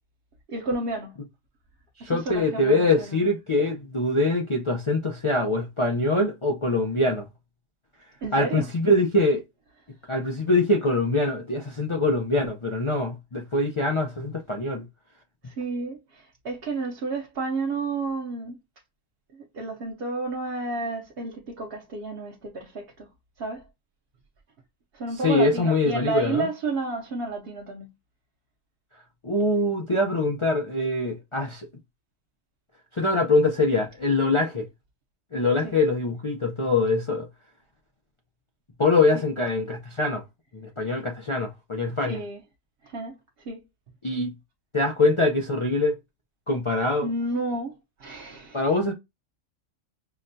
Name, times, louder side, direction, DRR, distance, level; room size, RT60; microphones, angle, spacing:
voice 1, 0.5-1.2 2.0-3.2 8.2-8.7 15.4-18.6 19.3-23.1 23.4-23.7 24.9-27.9 35.6-35.7 39.1-39.2 42.1-42.4 42.8-43.6 47.0-48.6, right 3 dB, 55° right, 0.9 m, -31 dB
voice 2, 2.0-7.3 8.3-9.4 10.1-14.8 25.2-26.5 29.2-31.7 32.9-34.7 35.3-37.3 38.8-40.2 40.5-42.2 44.0-44.3 44.7-45.9 46.5-47.1 48.5-48.9, left 2 dB, 50° left, 0.3 m, -23 dB
5.7 x 2.2 x 2.6 m
omnidirectional pair, 1.3 m